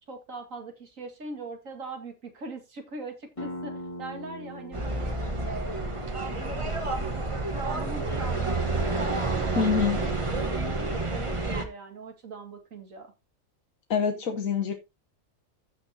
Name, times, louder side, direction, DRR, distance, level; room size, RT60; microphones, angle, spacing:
voice 1, 0.1-5.2 5.4-9.7 9.9-10.1 10.4-13.1, right 3 dB, 75° right, 2.4 m, -41 dB
sound 1, 3.4-8.8, equal, 25° left, 2.1 m, -43 dB
sound 2, 4.7-11.6, right 2 dB, 25° right, 1.3 m, -29 dB
voice 2, 9.6-10.0 13.9-14.7, left 6 dB, 85° left, 1.5 m, -25 dB
15.0 x 6.3 x 2.8 m
omnidirectional pair, 1.4 m